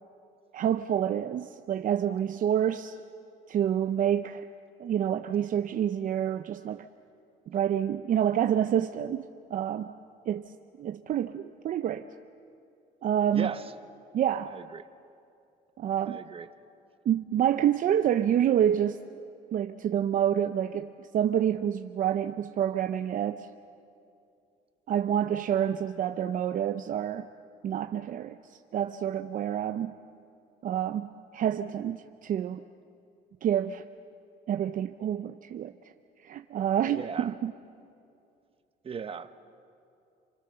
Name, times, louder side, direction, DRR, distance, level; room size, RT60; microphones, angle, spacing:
voice 1, 0.5-3.0 3.5-4.5 4.8-6.9 7.5-9.9 10.3-10.5 10.8-12.1 13.0-13.5 14.1-14.6 15.8-16.2 17.1-19.2 19.5-23.5 24.9-27.3 27.6-28.4 28.7-30.0 30.6-32.6 33.4-33.8 34.5-35.7 36.2-37.5, right 10 dB, 55° right, 8 dB, 0.7 m, -28 dB
voice 2, 14.5-14.8 16.1-16.5 36.9-37.3 38.8-39.4, right 6 dB, 35° right, 10 dB, 1.2 m, -37 dB
28.0 x 27.5 x 6.9 m, 2.5 s
cardioid pair, 110°, 17 cm